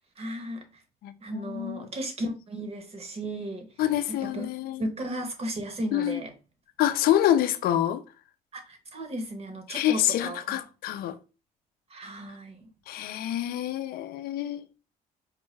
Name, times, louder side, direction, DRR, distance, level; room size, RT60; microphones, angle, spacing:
voice 1, 0.2-0.8 1.2-3.7 4.1-6.3 8.5-10.6 11.9-12.7, right 1 dB, 35° right, 1.0 m, -35 dB
voice 2, 1.0-1.9 3.8-4.9 5.9-6.2 6.8-8.0 9.7-11.2 12.9-14.7, left 12 dB, 65° left, 0.4 m, -27 dB
4.4 x 2.2 x 3.1 m
cardioid pair, 110°, 17 cm